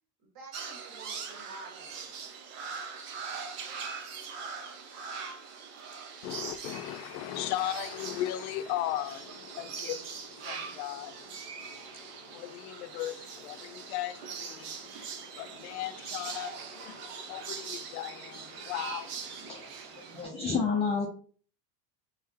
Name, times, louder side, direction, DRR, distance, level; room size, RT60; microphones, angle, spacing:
voice 1, 0.2-2.4, right 3 dB, 45° right, 1 dB, 1.8 m, -50 dB
sound 1, 0.5-20.2, right 5 dB, 85° right, 1.1 m, -42 dB
voice 2, 6.2-19.5, left 13 dB, 70° left, 12 dB, 0.6 m, -38 dB
voice 3, 19.5-21.1, left 5 dB, 15° left, -1 dB, 0.3 m, -31 dB
3.8 x 3.8 x 2.8 m, 0.43 s
supercardioid pair, 140°, 46 cm